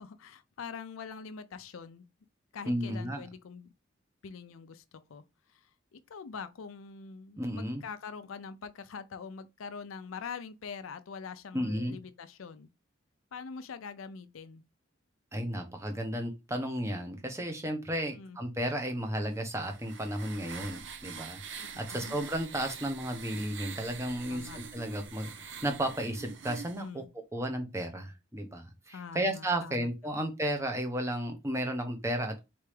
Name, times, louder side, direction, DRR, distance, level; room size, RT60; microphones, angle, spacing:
voice 1, 0.0-2.0 2.5-3.7 4.2-5.2 5.5-12.7 13.3-14.6 18.1-18.4 21.6-22.2 24.3-24.6 26.8-27.1 28.9-30.2, left 5 dB, 85° left, 0.5 m, -44 dB
voice 2, 2.7-3.2 7.4-7.8 11.5-12.0 15.3-27.0 27.3-32.4, right 1 dB, 15° right, 0.9 m, -33 dB
sound 1, 19.3-26.8, right 6 dB, 65° right, 0.7 m, -45 dB
4.2 x 3.3 x 3.3 m
head